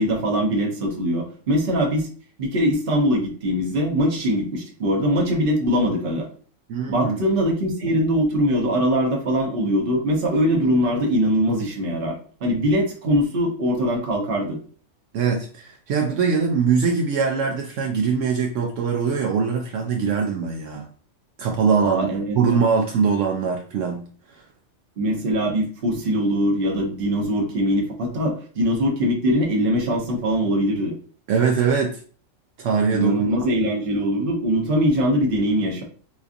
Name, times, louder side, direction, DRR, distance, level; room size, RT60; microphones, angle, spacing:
voice 1, 0.0-2.1 2.4-6.3 6.9-14.6 21.8-22.4 25.0-30.9 32.9-35.8, equal, 50° right, 1 dB, 1.0 m, -22 dB
voice 2, 6.7-7.2 15.1-20.9 21.4-22.1 22.3-24.4 31.3-32.0 32.6-33.7, right 5 dB, 75° right, 1 dB, 0.9 m, -22 dB
4.2 x 2.5 x 2.5 m, 0.43 s
omnidirectional pair, 1.4 m